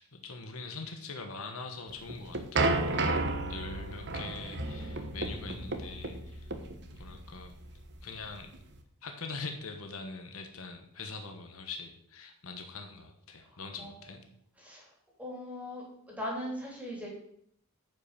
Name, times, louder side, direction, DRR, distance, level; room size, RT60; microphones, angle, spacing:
voice 1, 0.0-3.2 3.5-6.5 6.9-7.6 8.0-8.5 9.0-14.2, left 4 dB, 75° left, 5 dB, 1.2 m, -43 dB
sound 1, 1.9-8.8, right 2 dB, 50° right, 1.2 m, -33 dB
voice 2, 13.5-13.9 14.6-14.9 15.2-17.1, equal, 5° right, -3 dB, 3.1 m, -39 dB
9.5 x 5.7 x 6.7 m, 0.70 s
head